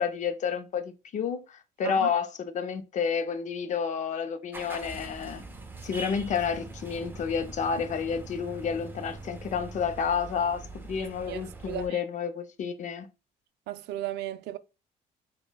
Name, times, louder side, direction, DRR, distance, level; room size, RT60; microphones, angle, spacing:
voice 1, 0.0-5.4 5.8-13.1, left 6 dB, 45° left, 0.5 m, -30 dB
sound 1, 4.5-11.9, right 2 dB, 10° right, 0.6 m, -42 dB
voice 2, 11.3-12.0 13.7-14.6, right 14 dB, 80° right, 0.4 m, -36 dB
5.2 x 2.2 x 2.2 m
cardioid pair, 110°, 17 cm